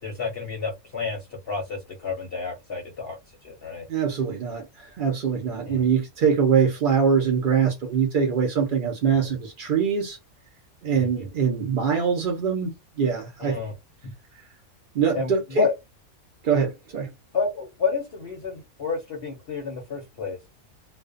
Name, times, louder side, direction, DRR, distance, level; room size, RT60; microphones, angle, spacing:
voice 1, 0.0-3.9 5.7-5.9 9.1-9.3 11.0-11.3 13.4-13.7 15.1-15.7 17.3-20.4, left 5 dB, 55° left, 0.7 m, -30 dB
voice 2, 3.9-10.2 10.8-13.6 14.9-15.7 16.4-17.1, right 6 dB, 65° right, 0.5 m, -23 dB
2.4 x 2.1 x 2.3 m
omnidirectional pair, 1.5 m